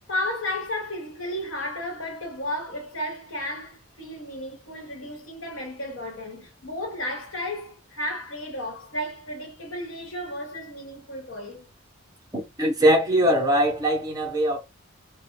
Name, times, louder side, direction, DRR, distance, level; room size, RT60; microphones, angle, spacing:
voice 1, 0.1-11.7, left 1 dB, 65° left, 1.1 m, -33 dB
voice 2, 12.3-14.6, equal, 15° right, 0.6 m, -21 dB
2.2 x 2.1 x 3.1 m
head